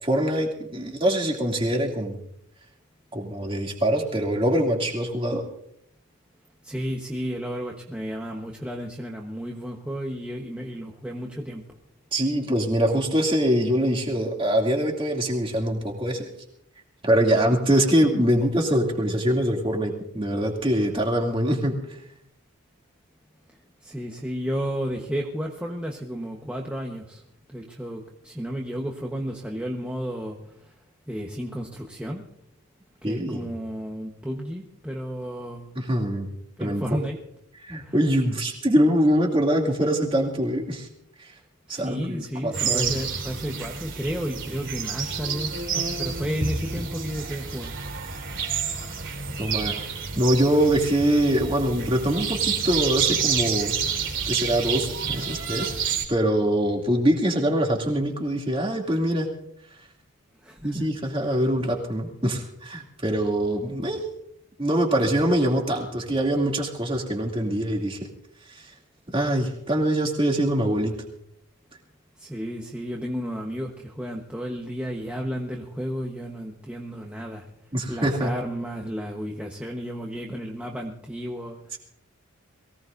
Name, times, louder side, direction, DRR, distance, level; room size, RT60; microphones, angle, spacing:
voice 1, 0.0-2.2 3.1-5.4 12.1-16.3 17.0-21.8 33.0-33.5 35.8-36.3 36.6-36.8 37.6-40.9 41.7-43.0 49.4-49.7 50.1-53.8 54.3-55.7 56.1-59.3 60.6-64.1 64.6-68.0 68.5-68.7 69.1-70.9 77.7-78.3 81.7-81.8, right 1 dB, 25° right, 0 dB, 2.7 m, -23 dB
voice 2, 6.6-11.6 23.8-27.2 27.5-30.7 31.1-32.2 33.0-35.7 36.6-37.2 37.8-38.0 41.7-47.7 60.4-60.9 61.2-61.4 72.2-77.5 77.9-81.6, equal, 5° right, -1 dB, 1.2 m, -32 dB
sound 1, 42.5-56.0, right 6 dB, 55° right, 3.3 m, -29 dB
23.0 x 17.0 x 2.7 m, 0.75 s
head